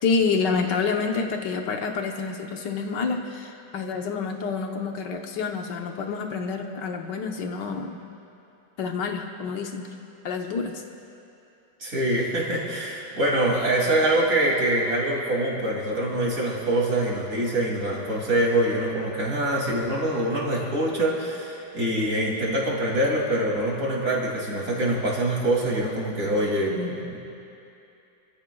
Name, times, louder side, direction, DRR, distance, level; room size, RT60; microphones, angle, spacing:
voice 1, 0.0-8.0 8.8-9.9 10.2-10.8, left 5 dB, 80° left, 3 dB, 1.7 m, -28 dB
voice 2, 11.8-27.2, right 1 dB, 50° right, -3 dB, 3.2 m, -24 dB
27.0 x 14.5 x 2.3 m, 2.7 s
omnidirectional pair, 1.9 m